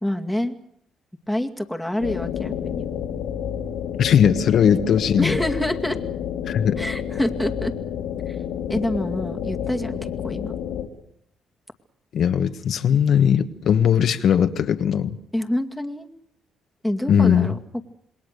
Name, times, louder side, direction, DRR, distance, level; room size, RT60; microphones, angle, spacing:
voice 1, 0.0-0.6 1.3-2.9 5.2-6.0 6.8-7.7 8.3-8.4 8.7-10.5 15.3-16.1 16.8-17.6, left 1 dB, ahead, 4 dB, 2.3 m, -26 dB
sound 1, 2.0-10.9, left 9 dB, 85° left, 2.4 m, -29 dB
voice 2, 4.0-5.4 6.5-6.8 12.1-15.2 17.1-17.5, left 8 dB, 65° left, 8 dB, 1.4 m, -19 dB
27.0 x 21.0 x 6.8 m, 0.69 s
cardioid pair, 90°, 0 cm